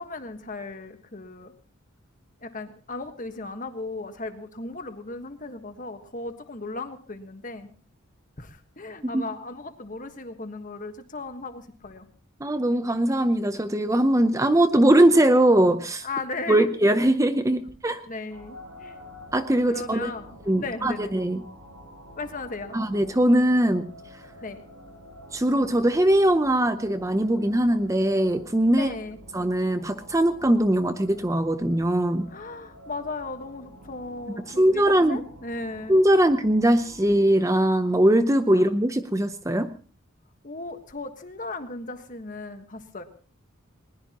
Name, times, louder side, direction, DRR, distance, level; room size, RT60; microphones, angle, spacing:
voice 1, 0.0-1.5 2.4-7.7 8.4-12.0 16.0-16.7 18.0-19.0 19.6-21.1 22.2-22.8 24.4-24.6 28.7-29.2 32.3-36.3 38.5-38.7 40.4-43.0, left 3 dB, 40° left, 8 dB, 1.4 m, -36 dB
voice 2, 12.4-16.1 16.5-18.0 19.3-20.1 20.5-21.4 22.7-23.9 25.3-28.9 29.3-32.3 34.6-35.2 35.9-39.7, right 1 dB, 15° right, 10 dB, 0.6 m, -21 dB
sound 1, 18.3-37.3, equal, 85° right, 4.9 m, -48 dB
20.5 x 20.0 x 3.0 m, 0.41 s
head